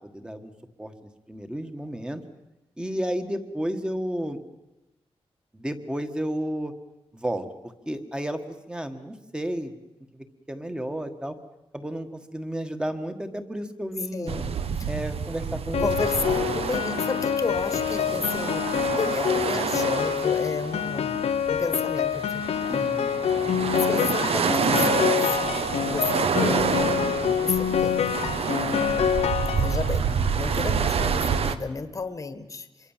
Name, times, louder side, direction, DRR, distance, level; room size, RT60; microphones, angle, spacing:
voice 1, 0.1-0.5 0.8-0.9 1.3-2.2 2.8-4.4 5.5-6.7 7.1-8.4 8.7-9.7 10.1-11.3 11.7-14.3 14.9-15.9 16.2-16.6 22.7-23.2, right 1 dB, 10° right, 8 dB, 1.6 m, -32 dB
voice 2, 14.1-14.5 14.8-14.9 15.8-21.1 21.4-22.4 22.7-22.9 23.7-25.3 25.9-27.0 27.4-28.0 29.5-32.9, left 4 dB, 30° left, 11 dB, 1.4 m, -32 dB
sound 1, 14.3-31.6, right 6 dB, 70° right, 1.2 m, -28 dB
Piano, 15.7-30.1, left 8 dB, 90° left, 0.9 m, -26 dB
26.0 x 22.5 x 7.4 m, 1.0 s
wide cardioid pair, 165°, 11 cm